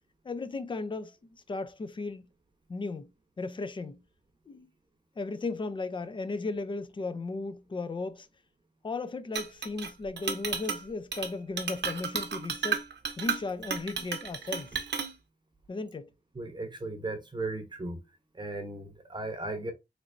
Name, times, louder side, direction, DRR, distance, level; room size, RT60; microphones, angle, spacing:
voice 1, 0.2-2.2 2.7-3.1 3.4-4.0 4.5-4.7 5.2-8.3 8.8-12.9 13.2-14.8 15.7-16.1, left 3 dB, 30° left, 0.4 m, -36 dB
Chink clink, 9.3-9.9 10.2-10.8 11.1-11.3 11.6-15.1, right 6 dB, 85° right, 0.7 m, -33 dB
voice 2, 16.3-18.0 18.3-19.7, right 2 dB, 25° right, 0.7 m, -36 dB
3.8 x 3.3 x 2.5 m
wide cardioid pair, 155°, 17 cm